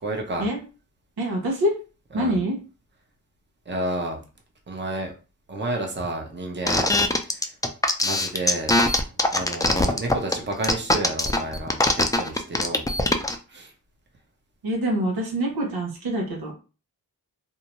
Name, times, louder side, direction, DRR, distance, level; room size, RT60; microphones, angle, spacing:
voice 1, 0.0-0.5 2.1-2.4 3.7-4.2 4.7-5.1 5.5-6.9 7.3-7.5 8.0-8.7 9.1-12.8 13.5-13.7, right 2 dB, 30° right, 1 dB, 0.9 m, -31 dB
voice 2, 1.2-1.7 2.1-2.6 14.6-16.5, right 1 dB, 80° right, -1 dB, 1.0 m, -25 dB
sound 1, 6.7-13.3, left 2 dB, 10° left, 0.5 m, -21 dB
2.6 x 2.2 x 3.0 m, 0.33 s
cardioid pair, 40°, 37 cm